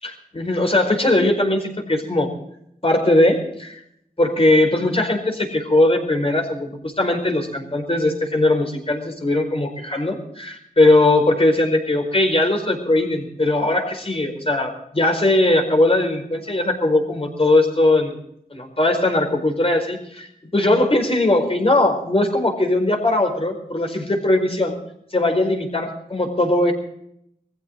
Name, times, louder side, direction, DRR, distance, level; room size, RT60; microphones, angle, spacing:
voice 1, 0.0-2.3 2.8-3.8 4.2-18.1 18.5-20.3 20.5-24.8 25.1-26.7, left 2 dB, 40° left, 3 dB, 4.8 m, -19 dB
21.0 x 15.5 x 3.8 m, 0.74 s
wide cardioid pair, 60°, 16 cm